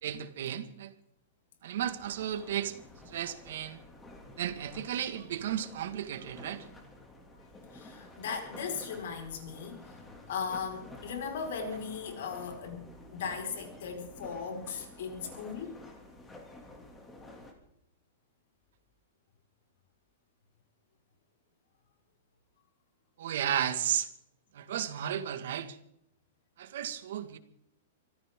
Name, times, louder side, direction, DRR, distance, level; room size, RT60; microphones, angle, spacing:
voice 1, 0.0-0.9 1.6-2.8 3.1-3.8 4.4-6.6 11.6-11.7 23.2-24.1 24.5-25.8 26.6-27.4, right 10 dB, 60° right, 10 dB, 1.8 m, -34 dB
sound 1, 1.8-17.5, left 2 dB, 10° left, 2.6 m, -51 dB
voice 2, 7.7-12.8 13.1-15.8, left 6 dB, 60° left, 3 dB, 4.9 m, -38 dB
25.0 x 15.0 x 3.8 m, 0.74 s
supercardioid pair, 165°, 0 cm